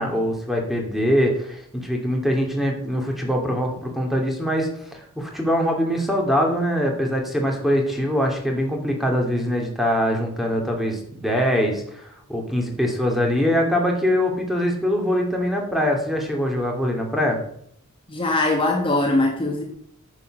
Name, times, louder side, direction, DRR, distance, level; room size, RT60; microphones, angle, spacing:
voice 1, 0.0-17.4, equal, ahead, 1 dB, 2.4 m, -23 dB
voice 2, 18.1-19.6, left 2 dB, 25° left, 1 dB, 1.8 m, -21 dB
9.8 x 8.3 x 6.4 m, 0.68 s
head